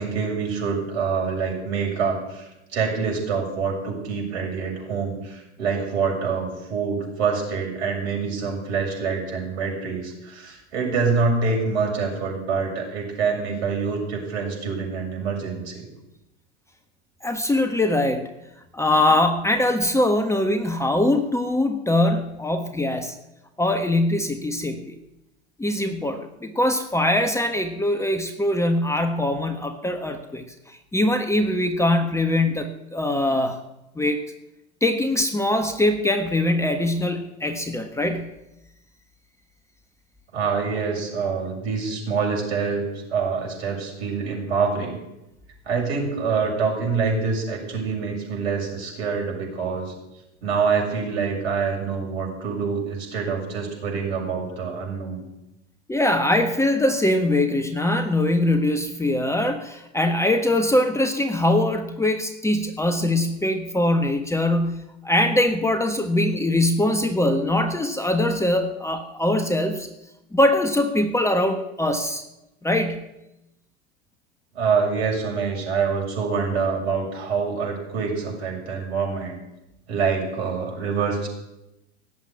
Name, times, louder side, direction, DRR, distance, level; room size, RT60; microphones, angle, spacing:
voice 1, 0.0-15.9 40.3-45.0 45.7-49.9 50.4-55.2 74.5-79.4 79.9-81.3, right 5 dB, 65° right, 1 dB, 7.0 m, -26 dB
voice 2, 17.2-18.3 18.7-23.1 23.6-24.9 25.6-33.6 34.0-34.2 34.8-38.3 55.9-69.9 70.3-72.2 72.6-73.1, left 1 dB, 10° left, 7 dB, 1.3 m, -22 dB
17.0 x 8.2 x 9.7 m, 0.93 s
figure-of-eight pair, 90°, 35 cm